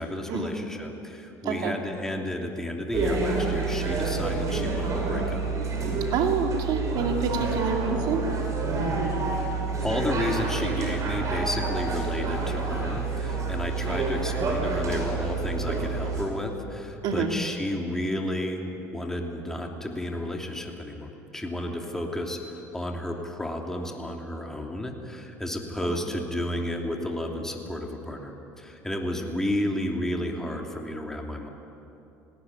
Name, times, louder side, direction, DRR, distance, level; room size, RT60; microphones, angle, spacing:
voice 1, 0.0-5.4 9.8-31.5, left 1 dB, 5° left, 1 dB, 3.0 m, -32 dB
sound 1, 2.9-16.2, right 3 dB, 45° right, 6.0 m, -28 dB
voice 2, 6.1-8.2 14.1-14.2 17.0-17.3, right 5 dB, 65° right, 3 dB, 2.8 m, -27 dB
19.5 x 17.5 x 9.6 m, 2.8 s
supercardioid pair, 85°, 8 cm